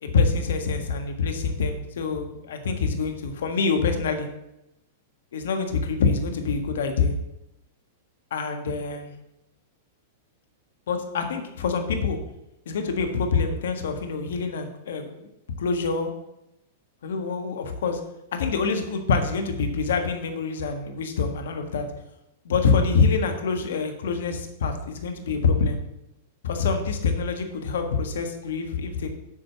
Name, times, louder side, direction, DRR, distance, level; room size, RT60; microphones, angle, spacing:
voice 1, 0.0-4.3 5.3-7.1 8.3-9.1 10.9-12.2 12.6-15.3 15.6-16.1 17.0-18.0 18.3-21.9 22.4-25.8 26.4-29.1, left 4 dB, 75° left, 5 dB, 1.5 m, -25 dB
8.7 x 5.1 x 7.2 m, 0.88 s
hypercardioid pair, 110°, 0 cm